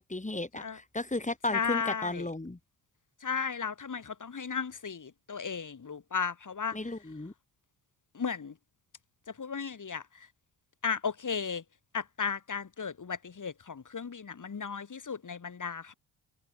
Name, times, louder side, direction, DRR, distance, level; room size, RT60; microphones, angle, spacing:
voice 1, 0.0-2.6 6.7-7.3, left 2 dB, 15° left, 5.2 m, -34 dB
voice 2, 1.5-2.3 3.2-6.8 8.1-8.5 9.4-10.0 10.8-11.6 11.9-15.9, left 6 dB, 40° left, 5.6 m, -35 dB
hypercardioid pair, 50°, 45 cm